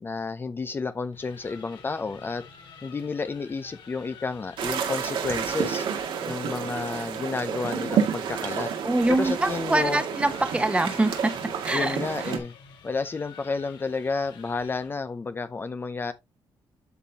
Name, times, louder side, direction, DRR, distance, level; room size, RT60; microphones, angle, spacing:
voice 1, 0.0-2.4 2.8-5.9 6.3-8.7 9.1-10.0 11.7-12.5 12.8-16.1, left 4 dB, 25° left, 0.6 m, -31 dB
sound 1, 0.9-5.2 7.8-15.1, left 6 dB, 85° left, 3.8 m, -50 dB
sound 2, 4.6-12.4, right 7 dB, 80° right, 2.0 m, -30 dB
voice 2, 8.8-11.3 11.6-12.0, right 2 dB, 15° right, 1.1 m, -24 dB
12.5 x 4.4 x 2.8 m
cardioid pair, 135°, 8 cm